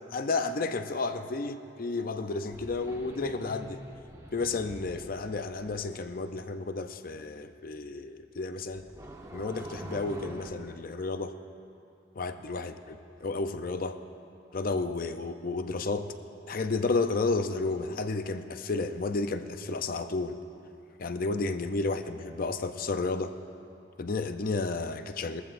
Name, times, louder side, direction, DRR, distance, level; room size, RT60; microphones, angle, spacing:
voice 1, 0.1-3.8 4.3-8.9 9.3-11.4 12.2-12.7 13.2-14.0 14.5-16.1 16.5-20.4 21.0-23.3 24.0-25.4, left 3 dB, 50° left, 9 dB, 0.6 m, -32 dB
sound 1, 2.5-5.8 8.7-10.5, right 1 dB, 20° right, 1.1 m, -45 dB
21.5 x 14.5 x 2.6 m, 2.7 s
head